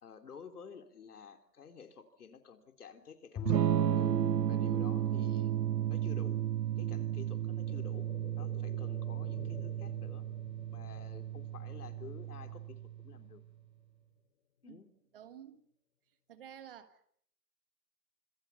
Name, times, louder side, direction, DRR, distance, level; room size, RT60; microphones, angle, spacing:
voice 1, 0.0-4.2 4.5-5.5 5.9-6.4 6.8-8.1 8.4-10.2 10.7-12.8 13.0-13.4 14.6-14.9, left 6 dB, 65° left, 7 dB, 3.5 m, -51 dB
Bowed string instrument, 3.4-7.6, left 8 dB, 10° left, 2.0 m, -48 dB
Electric guitar / Strum, 3.5-13.2, right 10 dB, 85° right, 1.1 m, -33 dB
sound 1, 6.5-14.3 14.6-14.7, left 8 dB, 35° left, 2.3 m, -57 dB
voice 2, 15.1-15.7 16.3-17.2, right 9 dB, 35° right, 11 dB, 1.7 m, -52 dB
26.0 x 24.0 x 5.8 m, 0.63 s
hypercardioid pair, 160°, 49 cm